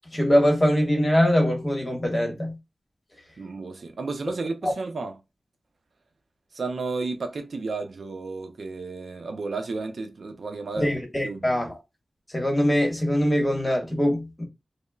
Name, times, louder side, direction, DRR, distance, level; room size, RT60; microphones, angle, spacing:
voice 1, 0.1-2.5 4.6-4.7 10.7-11.7 12.3-14.4, equal, 20° left, 1.2 m, -22 dB
voice 2, 3.4-5.2 6.5-10.9 11.2-11.4, right 3 dB, 70° right, 0.5 m, -32 dB
5.2 x 2.0 x 2.3 m
wide cardioid pair, 90°, 0 cm